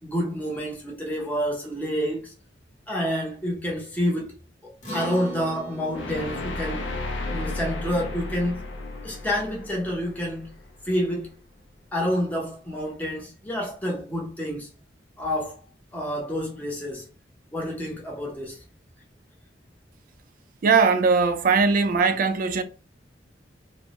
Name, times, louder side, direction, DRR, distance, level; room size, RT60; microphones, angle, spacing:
voice 1, 0.0-2.3 2.9-4.4 4.6-6.9 7.3-8.7 9.0-10.6 10.8-11.4 11.9-14.7 15.2-15.6 15.9-17.1 17.5-18.6, equal, 10° left, 0.7 m, -28 dB
Acoustic guitar, 4.8-9.5, right 1 dB, 40° left, 0.8 m, -41 dB
sound 1, 5.9-11.0, left 2 dB, 80° left, 0.4 m, -34 dB
voice 2, 20.6-22.6, right 4 dB, 50° right, 0.3 m, -20 dB
2.2 x 2.0 x 2.8 m
head